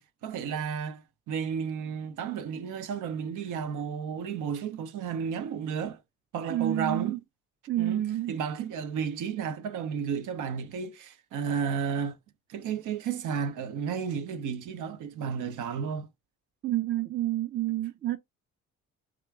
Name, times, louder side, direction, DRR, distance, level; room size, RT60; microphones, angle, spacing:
voice 1, 0.0-6.0 6.3-7.2 7.8-12.2 12.5-16.1, right 7 dB, 85° right, 0.8 m, -33 dB
voice 2, 6.5-7.2 7.7-8.3 16.6-18.2, right 14 dB, 35° right, 0.5 m, -29 dB
3.7 x 2.9 x 4.5 m
cardioid pair, 90°, 30 cm